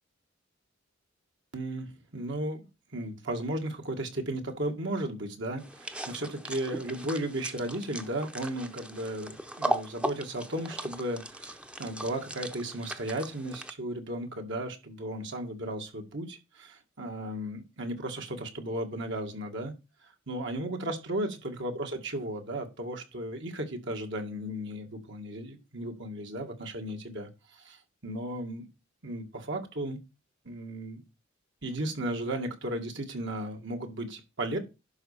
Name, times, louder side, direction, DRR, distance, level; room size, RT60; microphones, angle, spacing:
voice 1, 1.5-2.7 2.9-19.7 20.0-28.7 29.0-30.0 30.5-31.0 31.6-34.6, right 1 dB, 65° right, 4 dB, 2.1 m, -35 dB
sound 1, 5.6-13.7, right 1 dB, 5° right, 0.8 m, -37 dB
11.0 x 4.3 x 6.7 m, 0.27 s
head